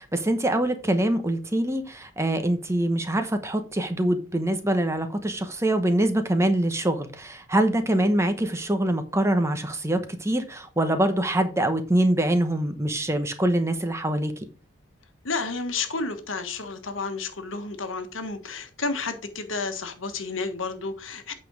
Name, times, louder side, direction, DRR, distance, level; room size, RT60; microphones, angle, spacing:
voice 1, 0.0-14.3, right 1 dB, 15° right, 0.9 m, -24 dB
voice 2, 15.2-21.3, left 4 dB, 85° left, 1.4 m, -31 dB
8.4 x 5.4 x 4.7 m
head